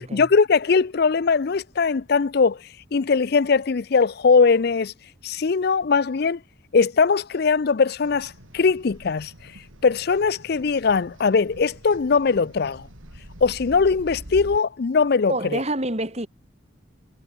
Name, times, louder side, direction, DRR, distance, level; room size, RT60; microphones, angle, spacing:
voice 1, 0.0-2.6 2.9-4.9 5.2-6.4 6.7-12.9 13.4-15.6, left 5 dB, 50° left, 0.5 m, -20 dB
sound 1, 8.0-14.6, equal, 85° right, 5.6 m, -44 dB
voice 2, 15.3-16.3, right 1 dB, 30° right, 5.6 m, -27 dB
head